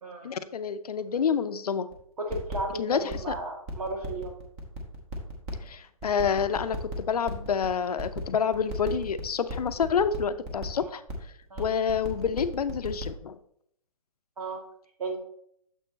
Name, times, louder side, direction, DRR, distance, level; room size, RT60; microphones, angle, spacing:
voice 1, 0.2-1.9 2.8-3.3 5.6-11.0 11.6-13.4, left 6 dB, 85° left, 11 dB, 0.6 m, -28 dB
sound 1, 1.9-2.0 2.3-3.3 3.7-5.7 6.0-8.2 8.5-10.8 11.1-11.2 11.4-13.0, right 2 dB, 20° right, 1.1 m, -37 dB
voice 2, 2.2-4.3 10.7-10.9 11.5-11.7 14.4-14.6 15.0-15.2, right 2 dB, 80° right, 1 dB, 2.2 m, -34 dB
7.1 x 4.6 x 4.1 m, 0.70 s
hypercardioid pair, 160°, 19 cm